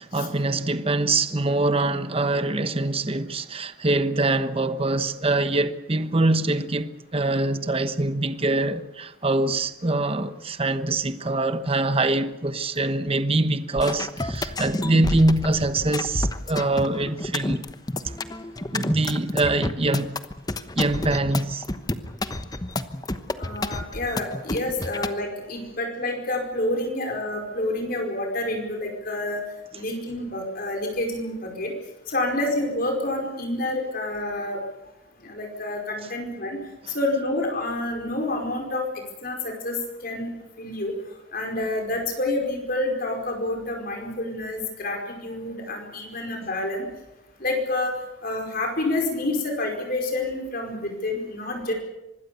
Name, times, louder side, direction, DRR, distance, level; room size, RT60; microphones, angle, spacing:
voice 1, 0.0-17.6 18.0-18.1 18.7-20.2 20.7-21.6, right 2 dB, 30° right, 1.1 m, -24 dB
sound 1, 13.8-25.1, left 1 dB, 20° left, 1.0 m, -29 dB
voice 2, 23.4-29.4 29.7-31.7 32.1-34.6 35.2-36.6 36.9-38.8 39.2-40.3 40.6-40.9 41.3-46.9 47.4-47.9 48.2-51.7, left 2 dB, 50° left, 4.9 m, -28 dB
25.0 x 20.5 x 6.9 m
head